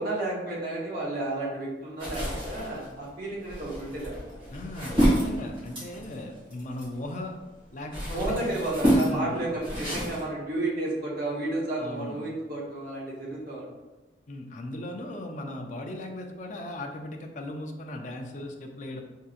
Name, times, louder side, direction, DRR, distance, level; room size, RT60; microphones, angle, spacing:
voice 1, 0.0-4.6 8.1-13.7, right 2 dB, 55° right, -5 dB, 1.2 m, -32 dB
sound 1, 2.0-7.2 7.6-10.2, equal, 30° right, 1.4 m, -28 dB
voice 2, 4.5-7.4 7.7-8.5 9.0-9.4 11.8-12.2 14.3-19.0, left 1 dB, 45° left, 3 dB, 0.4 m, -38 dB
4.6 x 2.7 x 2.4 m, 1.2 s
head